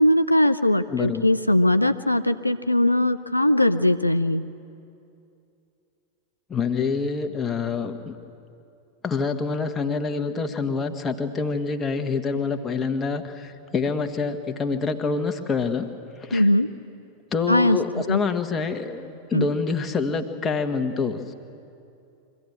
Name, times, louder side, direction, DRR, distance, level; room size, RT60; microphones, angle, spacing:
voice 1, 0.0-4.4 16.3-16.7 17.5-18.2 19.3-19.5, left 1 dB, 85° left, 9 dB, 0.5 m, -20 dB
voice 2, 0.9-1.2 6.5-8.1 9.0-15.9 16.3-16.4 17.3-21.2, left 4 dB, 20° left, 6 dB, 1.5 m, -26 dB
24.0 x 15.0 x 8.6 m, 2.6 s
figure-of-eight pair, 90°, 0 cm